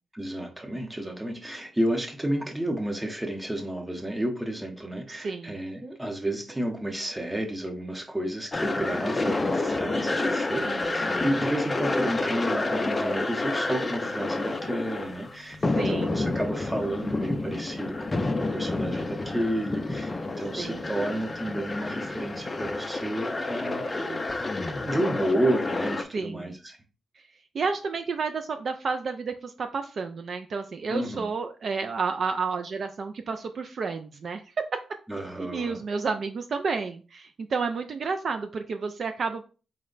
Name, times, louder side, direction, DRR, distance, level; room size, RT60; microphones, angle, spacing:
voice 1, 0.1-24.6 24.8-26.8 30.9-31.3 35.1-35.8, right 1 dB, 10° right, 3 dB, 0.7 m, -31 dB
voice 2, 5.1-5.6 10.7-11.2 15.8-16.2 20.6-20.9 26.1-26.5 27.5-34.4 35.4-39.4, right 5 dB, 50° right, 7 dB, 0.3 m, -31 dB
sound 1, 8.5-26.0, left 2 dB, 25° left, 0.4 m, -29 dB
4.3 x 2.1 x 3.8 m, 0.35 s
wide cardioid pair, 130°, 0 cm